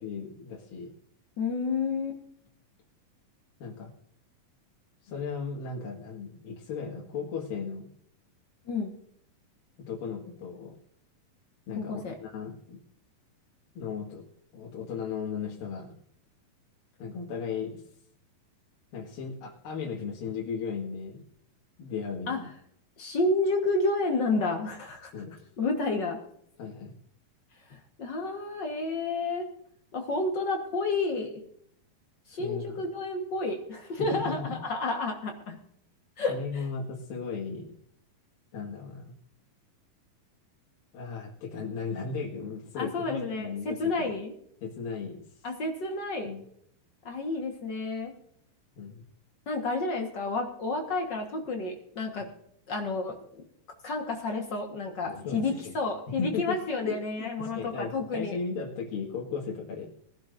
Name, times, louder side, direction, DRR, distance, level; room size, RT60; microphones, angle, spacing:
voice 1, 0.0-0.9 3.6-3.9 5.0-7.9 9.9-10.8 11.7-12.8 13.7-14.2 14.5-15.9 17.0-17.8 18.9-21.2 21.8-22.5 25.1-25.5 26.6-27.0 32.3-32.8 34.0-34.6 36.3-37.7 38.5-39.1 40.9-44.1 44.6-45.2 46.2-46.5 48.8-49.0 55.1-55.7 56.1-56.6 56.8-59.9, left 5 dB, 80° left, -3 dB, 3.5 m, -36 dB
voice 2, 1.4-2.2 8.7-8.9 11.7-12.2 22.3-22.4 23.0-25.1 25.6-26.2 27.7-29.5 29.9-31.3 32.3-35.6 36.2-36.6 42.8-44.3 45.4-46.3 47.0-48.1 49.5-52.3 52.7-53.2 53.8-58.4, left 3 dB, 55° left, 2 dB, 1.2 m, -30 dB
20.5 x 12.0 x 2.6 m, 0.67 s
omnidirectional pair, 4.0 m